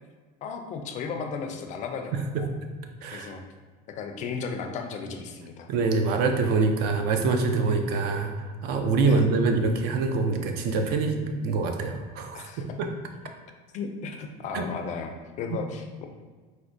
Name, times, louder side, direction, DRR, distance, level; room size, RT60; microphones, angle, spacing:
voice 1, 0.4-2.5 3.1-3.4 3.9-5.7 9.0-9.3 12.3-12.6 13.7-15.1 15.4-16.1, left 5 dB, 45° left, 4 dB, 0.4 m, -35 dB
voice 2, 2.1-2.4 3.0-3.4 5.7-8.3 8.6-12.9 14.5-14.6, right 4 dB, 60° right, 4 dB, 0.5 m, -25 dB
4.3 x 2.1 x 2.5 m, 1.4 s
supercardioid pair, 120°, 18 cm